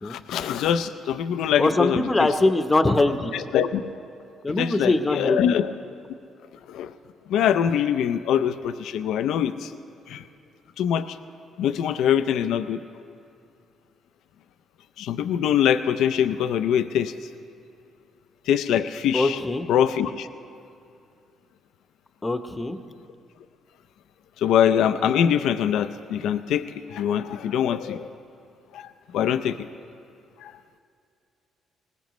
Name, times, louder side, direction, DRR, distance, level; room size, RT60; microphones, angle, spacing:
voice 1, 0.0-2.3 3.3-3.8 4.5-5.7 6.7-6.9 7.3-9.7 10.1-10.2 10.8-11.2 11.6-12.8 15.0-17.1 18.5-19.4 19.7-20.3 24.4-28.1 28.7-28.8 29.1-29.7 30.4-30.5, left 9 dB, 85° left, 11 dB, 0.4 m, -23 dB
voice 2, 1.6-3.3 4.4-5.5 19.1-19.7 22.2-22.8, left 2 dB, 20° left, 8 dB, 0.8 m, -22 dB
21.0 x 19.0 x 3.1 m, 2.4 s
cardioid pair, 90°, 0 cm